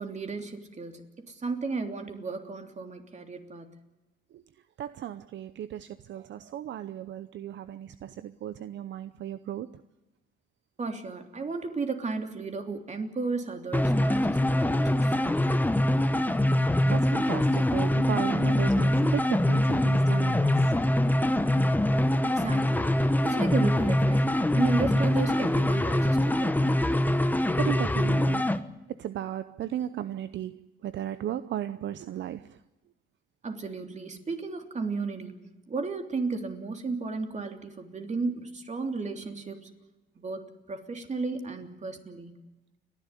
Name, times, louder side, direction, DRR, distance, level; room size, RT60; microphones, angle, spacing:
voice 1, 0.0-3.8 10.8-15.2 22.2-26.8 33.4-35.4 35.7-39.7 40.1-42.5, right 4 dB, 35° right, 5 dB, 3.2 m, -34 dB
voice 2, 4.8-9.8 16.6-20.7 27.3-28.6 28.9-32.6, right 11 dB, 65° right, 13 dB, 0.8 m, -36 dB
sound 1, 13.7-28.6, left 1 dB, 10° left, 1.2 m, -24 dB
30.0 x 11.5 x 9.9 m, 1.0 s
cardioid pair, 90°, 20 cm